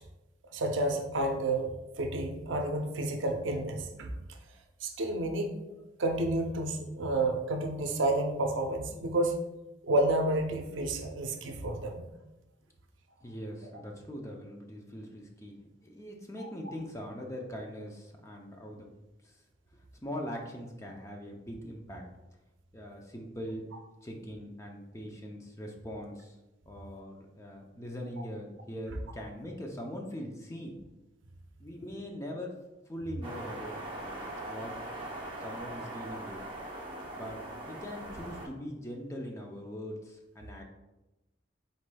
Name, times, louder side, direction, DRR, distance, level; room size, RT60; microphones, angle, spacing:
voice 1, 0.5-4.2 4.8-5.6 6.0-9.3 9.8-12.1 16.4-16.5, right 2 dB, 80° right, 4 dB, 0.5 m, -30 dB
voice 2, 13.2-15.6 15.8-18.9 19.2-19.3 20.0-22.1 22.7-23.6 24.0-26.4 26.7-30.8 31.6-32.6 32.9-34.2 34.5-34.8 35.4-36.4 37.1-40.6, equal, 15° left, 1 dB, 0.5 m, -41 dB
sound 1, 33.2-38.5, right 1 dB, 25° right, 0.7 m, -41 dB
4.8 x 4.1 x 2.2 m, 1.0 s
head